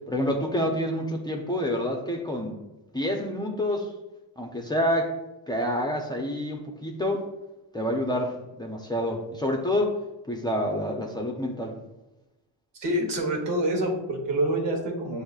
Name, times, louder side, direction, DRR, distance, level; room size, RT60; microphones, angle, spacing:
voice 1, 0.0-2.5 2.9-3.9 4.4-5.1 5.5-7.3 7.7-10.0 10.3-11.7, left 1 dB, 10° left, 0 dB, 0.7 m, -28 dB
voice 2, 12.7-15.2, right 1 dB, 65° right, 1 dB, 1.3 m, -27 dB
7.6 x 2.8 x 2.4 m, 1.0 s
cardioid pair, 80°, 45 cm